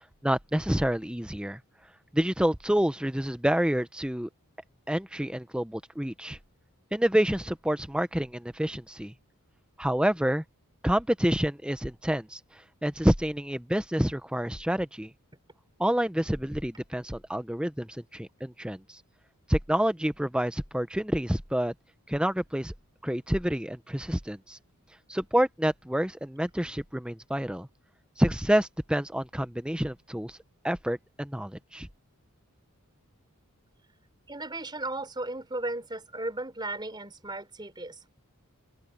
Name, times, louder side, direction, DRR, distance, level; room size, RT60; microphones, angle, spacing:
voice 1, 0.2-1.6 2.1-4.3 4.9-6.4 6.9-9.1 9.8-10.4 10.8-12.4 12.8-15.1 15.8-19.0 19.5-21.7 22.1-22.7 23.0-24.6 25.1-27.7 28.2-30.4 30.6-31.9, equal, 5° right, 0.8 m, -28 dB
voice 2, 34.3-38.0, right 2 dB, 20° right, 4.6 m, -35 dB
open air
head